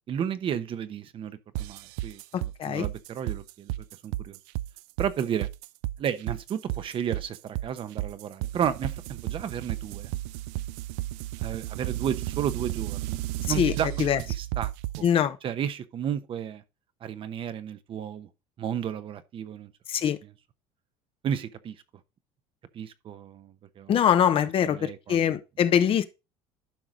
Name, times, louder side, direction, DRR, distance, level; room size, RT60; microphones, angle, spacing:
voice 1, 0.1-3.7 4.0-4.4 5.0-5.5 6.0-10.1 11.4-13.2 13.5-14.7 15.0-15.1 15.4-16.6 17.0-18.3 18.6-19.7 20.2-20.3 21.2-21.7 22.7-24.0 24.6-25.3, right 9 dB, 45° right, 1.0 m, -33 dB
sound 1, 1.5-15.1, right 16 dB, 85° right, 0.4 m, -33 dB
voice 2, 15.0-15.4 19.9-20.2 23.9-26.0, left 9 dB, 45° left, 1.0 m, -23 dB
12.0 x 4.8 x 3.8 m
supercardioid pair, 105°, 13 cm